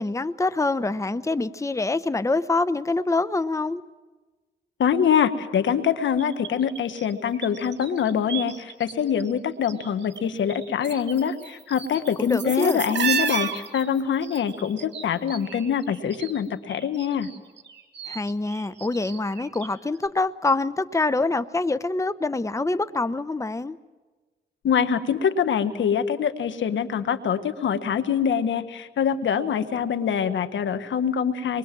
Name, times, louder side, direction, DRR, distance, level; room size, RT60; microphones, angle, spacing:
voice 1, 0.0-3.8 12.2-12.8 18.1-23.8, left 3 dB, 15° left, 13 dB, 0.9 m, -25 dB
voice 2, 4.8-17.3 24.6-31.6, left 7 dB, 80° left, 10 dB, 1.6 m, -24 dB
sound 1, 6.2-8.9 9.2-10.2 10.5-16.4 16.7-19.7 20.0-20.1, right 7 dB, 65° right, 2.7 m, -33 dB
25.5 x 22.0 x 7.6 m, 1.3 s
cardioid pair, 65°, 19 cm